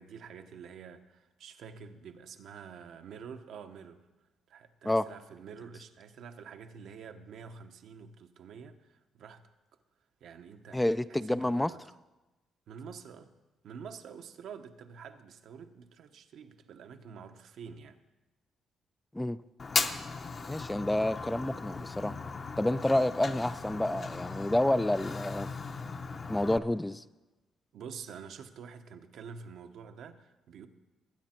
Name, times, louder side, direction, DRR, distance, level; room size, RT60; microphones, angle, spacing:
voice 1, 0.0-4.1 4.5-9.5 10.2-10.8 11.1-11.8 12.7-13.3 13.6-18.0 27.7-30.7, right 6 dB, 75° right, 1.0 m, -47 dB
voice 2, 10.7-11.7 19.1-19.4 20.5-22.2 22.6-25.5 26.3-27.0, left 1 dB, 10° left, 0.3 m, -29 dB
Fire, 19.6-26.6, left 4 dB, 40° left, 0.8 m, -37 dB
20.5 x 9.4 x 4.4 m
cardioid pair, 110°, 0 cm